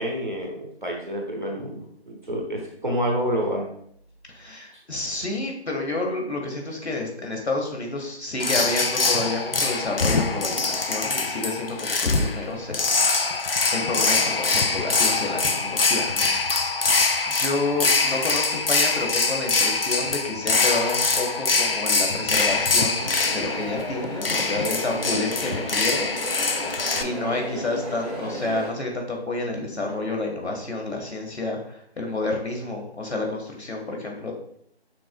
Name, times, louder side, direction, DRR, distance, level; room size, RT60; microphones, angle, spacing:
voice 1, 0.0-3.7, equal, 45° right, 0 dB, 1.1 m, -28 dB
voice 2, 4.3-12.9 13.7-16.7 17.3-26.2 27.0-34.3, left 2 dB, 80° left, 1 dB, 1.4 m, -29 dB
sound 1, 8.4-27.0, left 3 dB, 60° left, 0.5 m, -23 dB
sound 2, 23.0-28.7, equal, 35° left, 0.9 m, -34 dB
6.1 x 3.6 x 2.2 m, 0.69 s
figure-of-eight pair, 175°, 32 cm